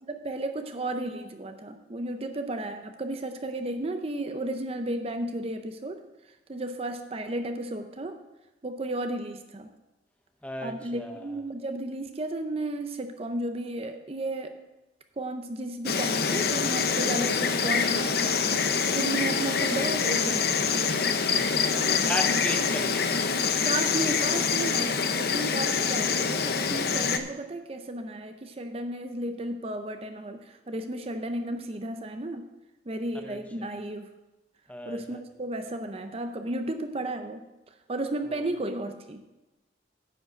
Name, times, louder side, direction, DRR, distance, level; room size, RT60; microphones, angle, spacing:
voice 1, 0.0-6.0 6.5-8.2 8.6-9.7 10.6-14.5 15.2-18.4 18.9-21.0 21.9-22.2 23.6-32.5 32.9-34.1 34.9-37.5 37.9-39.2, right 1 dB, 30° right, 7 dB, 0.5 m, -33 dB
voice 2, 10.4-11.2 21.7-23.2 33.1-33.7 34.7-35.2 38.3-38.4, left 1 dB, 5° left, 5 dB, 0.7 m, -36 dB
Insect, 15.9-27.2, left 5 dB, 55° left, 0.7 m, -25 dB
9.6 x 5.0 x 7.9 m, 1.0 s
head